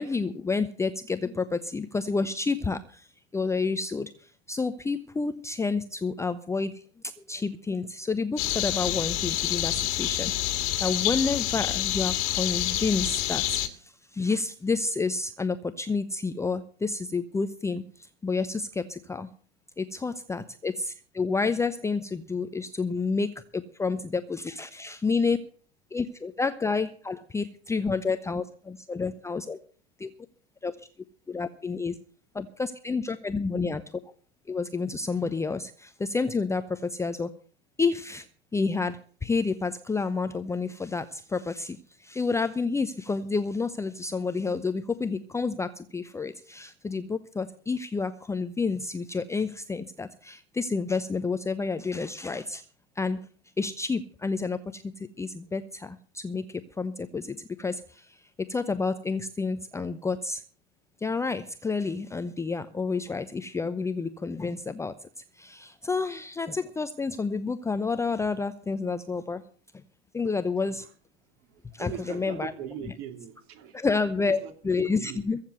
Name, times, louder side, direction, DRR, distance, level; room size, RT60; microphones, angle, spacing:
voice 1, 0.0-2.8 3.3-4.1 4.5-6.7 7.3-10.3 10.8-13.6 14.2-17.8 18.2-19.3 19.8-25.4 25.9-29.6 30.0-30.1 30.6-30.7 31.3-31.9 32.4-33.8 34.5-35.7 36.0-37.3 37.8-38.2 38.5-41.1 41.3-41.8 42.1-52.6 53.0-53.2 53.6-54.8 55.2-56.0 56.2-56.4 56.8-57.7 58.5-60.4 61.0-64.9 65.4-69.4 70.1-70.8 71.8-72.5 72.9-73.0 73.7-75.4, left 4 dB, 10° left, 0.8 m, -29 dB
sound 1, 8.4-13.7, left 14 dB, 40° left, 1.8 m, -28 dB
voice 2, 71.5-73.9 74.2-74.5 75.0-75.2, right 9 dB, 40° right, 3.0 m, -40 dB
15.0 x 7.4 x 8.1 m
figure-of-eight pair, 85°, 32 cm